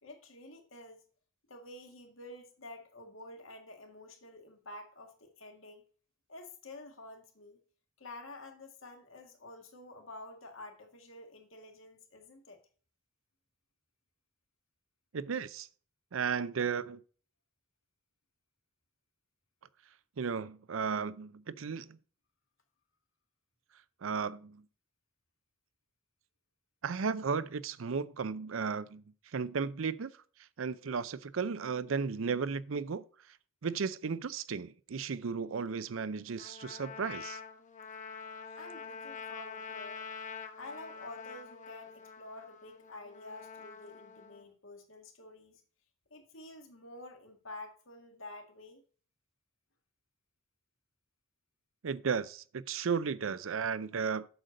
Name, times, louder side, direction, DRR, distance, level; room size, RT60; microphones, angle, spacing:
voice 1, 0.0-1.0 1.5-5.8 6.3-7.6 8.0-12.6 38.5-40.0 40.6-45.6 46.1-48.8, left 2 dB, 80° left, 1.8 m, -49 dB
voice 2, 15.1-15.7 16.1-17.0 20.2-22.0 24.0-24.6 26.8-29.0 29.3-30.1 30.6-33.1 33.6-37.4 51.8-54.3, right 5 dB, 85° right, 0.5 m, -34 dB
Trumpet, 36.4-44.4, left 5 dB, 40° left, 1.1 m, -46 dB
7.9 x 6.6 x 3.8 m
head